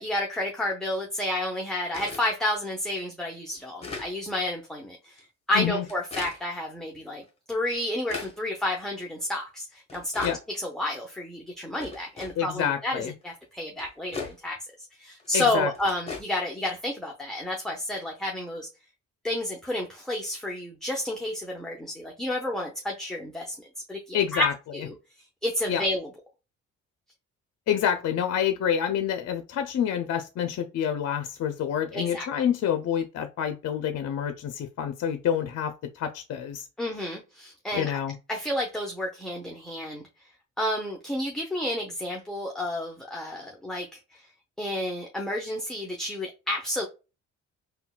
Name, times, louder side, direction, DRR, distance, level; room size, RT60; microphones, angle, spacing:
voice 1, 0.0-7.2 7.5-14.6 15.0-18.7 19.2-23.6 23.9-24.8 25.4-26.1 31.9-32.3 36.8-38.0 38.3-40.0 40.6-44.2 44.6-46.8, left 1 dB, ahead, 0.7 m, -30 dB
sound 1, 1.9-2.3 2.9-3.0 3.5-4.1 5.1-5.2 5.8-6.4 7.2-7.3 7.7-8.4 9.2-9.3 9.9-10.4 11.1-11.2 11.8-12.4 13.3-13.4 13.8-14.4 15.2-15.3 15.7-16.2, left 4 dB, 20° left, 1.1 m, -38 dB
voice 2, 12.4-13.1 15.3-15.7 24.1-24.5 25.7-25.8 27.7-36.7 37.7-38.2, left 9 dB, 55° left, 0.5 m, -27 dB
3.7 x 2.3 x 2.3 m
cardioid pair, 90°, 30 cm